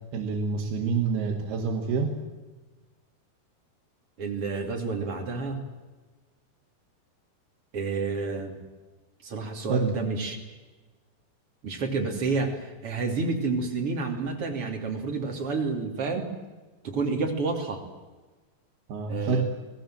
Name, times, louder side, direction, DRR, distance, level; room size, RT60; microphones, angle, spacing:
voice 1, 0.1-2.2 9.7-9.9 18.9-19.4, right 5 dB, 70° right, 0 dB, 3.9 m, -27 dB
voice 2, 4.2-5.6 7.7-8.6 9.2-10.4 11.6-16.3 16.8-17.8 19.1-19.4, right 4 dB, 35° right, 3 dB, 3.3 m, -29 dB
29.5 x 19.5 x 7.7 m, 1.2 s
omnidirectional pair, 5.0 m